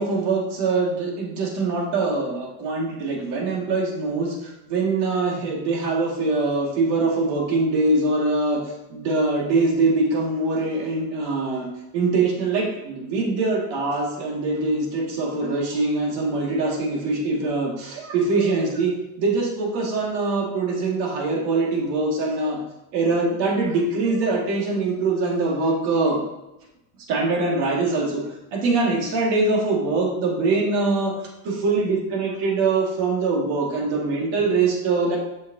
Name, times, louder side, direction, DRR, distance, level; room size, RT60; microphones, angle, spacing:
voice 1, 0.0-8.6 8.9-11.7 11.9-18.9 19.2-22.6 22.9-26.2 27.1-28.2 28.5-31.1 31.4-35.2, right 3 dB, 60° right, -1 dB, 2.1 m, -23 dB
7.4 x 6.3 x 2.8 m, 0.94 s
supercardioid pair, 140°, 45 cm